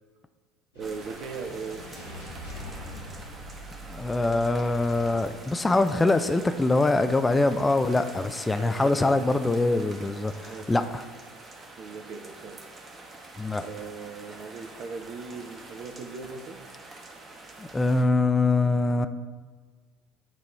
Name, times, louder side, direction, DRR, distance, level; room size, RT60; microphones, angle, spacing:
sound 1, 0.7-9.1, equal, 85° left, 2.0 m, -45 dB
voice 1, 0.7-1.8 8.6-9.2 10.5-10.7 11.8-12.6 13.6-16.6, right 4 dB, 45° right, 5 dB, 0.6 m, -38 dB
sound 2, 0.8-18.0, right 2 dB, 30° right, 1.1 m, -46 dB
voice 2, 3.9-11.0 13.4-13.6 17.6-19.1, left 2 dB, 15° left, 9 dB, 0.3 m, -24 dB
8.9 x 3.0 x 4.5 m, 1.4 s
figure-of-eight pair, 65°, 0 cm